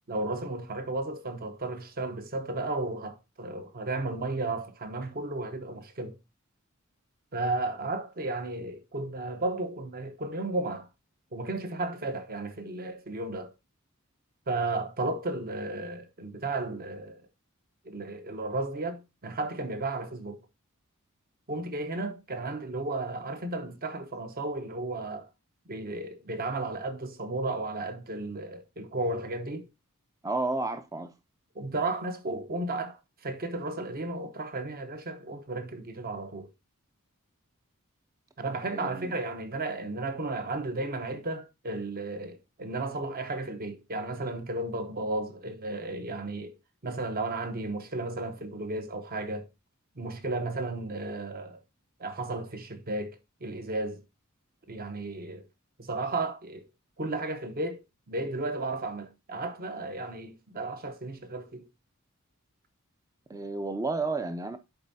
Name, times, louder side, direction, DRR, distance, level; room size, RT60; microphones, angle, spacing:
voice 1, 0.1-6.2 7.3-10.9 11.3-13.5 14.5-17.2 17.8-20.4 21.5-25.3 25.7-29.7 31.5-36.5 38.4-46.5 46.8-49.5 50.0-51.6 52.0-54.0 54.7-55.4 55.8-56.7 57.0-61.6, right 2 dB, 45° right, 0.8 m, -34 dB
voice 2, 30.2-31.1 38.6-39.1 63.3-64.6, right 3 dB, 15° right, 0.4 m, -31 dB
10.5 x 4.5 x 2.7 m
head